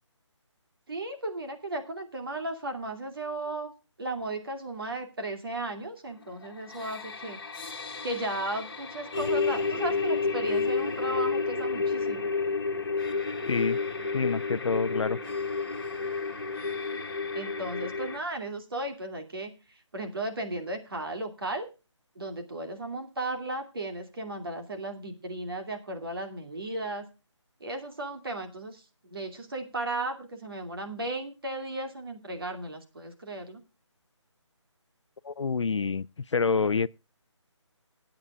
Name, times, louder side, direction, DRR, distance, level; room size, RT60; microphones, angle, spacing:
voice 1, 0.9-3.7 4.0-7.4 8.0-12.3 17.3-19.5 19.9-21.7 22.2-27.1 27.6-28.8 29.1-33.6, right 2 dB, 50° right, 2.5 m, -35 dB
sound 1, 6.4-18.2, left 4 dB, 45° left, 1.6 m, -31 dB
voice 2, 13.5-13.8 14.1-15.2 35.2-36.9, left 5 dB, 70° left, 0.5 m, -27 dB
26.0 x 8.7 x 2.4 m
hypercardioid pair, 175°, 16 cm